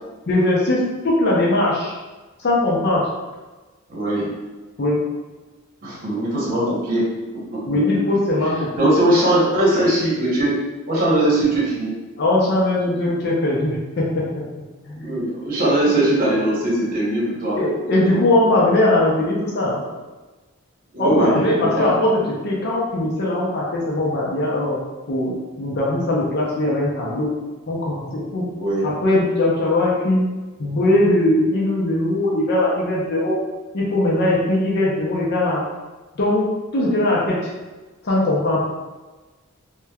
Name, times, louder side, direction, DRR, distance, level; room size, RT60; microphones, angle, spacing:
voice 1, 0.3-1.9 2.4-3.0 4.8-5.0 7.7-8.9 12.2-14.2 14.9-15.2 17.6-19.8 21.0-24.8 25.1-27.3 27.7-28.4 28.8-30.3 30.6-33.3 33.7-35.6 36.2-36.4 36.7-37.5 38.0-38.6, left 1 dB, 50° left, -5 dB, 0.5 m, -20 dB
voice 2, 3.9-4.3 5.8-7.7 8.7-10.6 10.9-12.0 15.0-17.6 20.9-21.9 28.6-28.8, right 1 dB, 40° right, -6 dB, 0.8 m, -20 dB
2.9 x 2.1 x 2.3 m, 1.2 s
head